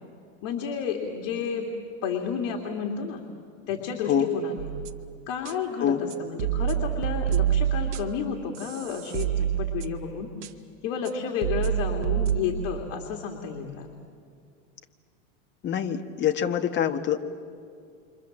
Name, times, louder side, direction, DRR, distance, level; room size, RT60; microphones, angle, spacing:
voice 1, 0.4-1.7 2.0-3.2 3.7-4.7 5.3-10.5 10.8-13.9, left 7 dB, 60° left, 2 dB, 2.9 m, -31 dB
sound 1, 4.6-5.0 5.4-5.5 6.1-8.3 8.5-10.1 10.4-10.5 11.0-11.1 11.4-12.8, right 11 dB, 75° right, 1.6 m, -27 dB
voice 2, 15.6-17.2, left 9 dB, 30° left, 6 dB, 1.5 m, -25 dB
29.0 x 25.0 x 7.5 m, 2.3 s
supercardioid pair, 140°, 36 cm